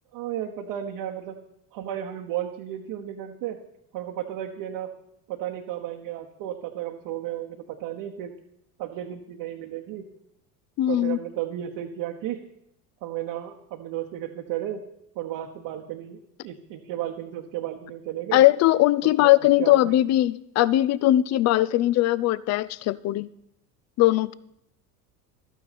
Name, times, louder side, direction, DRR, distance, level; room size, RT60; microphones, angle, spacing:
voice 1, 0.1-1.4 1.7-3.6 3.9-4.9 5.3-8.3 8.8-10.1 10.9-12.4 13.0-14.8 15.1-16.2 16.4-18.4 19.0-19.3 19.6-19.8, right 12 dB, 55° right, 1.1 m, -33 dB
voice 2, 10.8-11.2 18.3-23.3 24.0-24.3, left 15 dB, 35° left, 0.4 m, -20 dB
12.5 x 9.1 x 4.2 m
hypercardioid pair, 80°, 48 cm